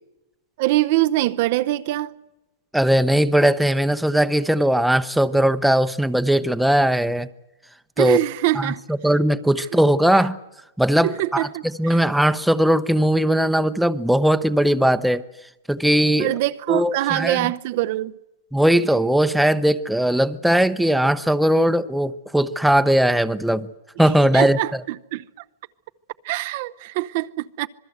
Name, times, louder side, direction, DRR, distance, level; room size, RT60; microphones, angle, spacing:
voice 1, 0.6-2.1 8.0-8.8 11.0-12.0 16.2-18.1 24.3-24.7 25.1-25.2 26.2-27.7, right 17 dB, 50° right, 0.8 m, -23 dB
voice 2, 2.7-7.3 8.0-8.2 8.5-10.4 10.8-11.5 11.8-15.2 15.7-16.3 16.7-17.5 18.5-23.7 24.0-24.8, right 1 dB, ahead, 0.9 m, -19 dB
26.5 x 21.0 x 7.9 m
hypercardioid pair, 140°, 0 cm